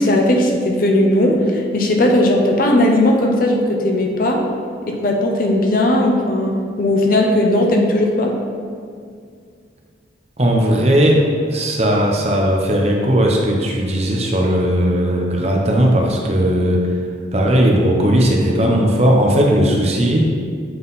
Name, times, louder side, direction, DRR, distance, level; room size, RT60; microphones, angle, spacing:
voice 1, 0.0-4.4 4.9-8.4, left 1 dB, 50° left, 1 dB, 0.7 m, -17 dB
voice 2, 10.4-11.2 11.5-17.0 17.3-20.2, equal, 35° right, 0 dB, 0.7 m, -16 dB
7.7 x 3.7 x 4.0 m, 2.1 s
head